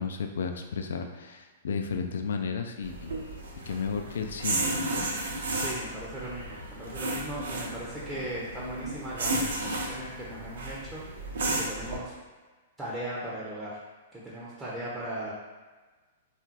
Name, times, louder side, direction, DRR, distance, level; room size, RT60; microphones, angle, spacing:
voice 1, 0.0-3.1 3.7-4.7, left 5 dB, 60° left, 5 dB, 0.3 m, -33 dB
sound 1, 2.8-12.0, right 2 dB, 60° right, 0.6 m, -33 dB
voice 2, 5.5-11.0 11.5-12.1 12.8-13.7 14.1-15.3, right 1 dB, 10° right, -7 dB, 0.6 m, -38 dB
3.5 x 2.4 x 2.8 m, 1.3 s
figure-of-eight pair, 105°, 0 cm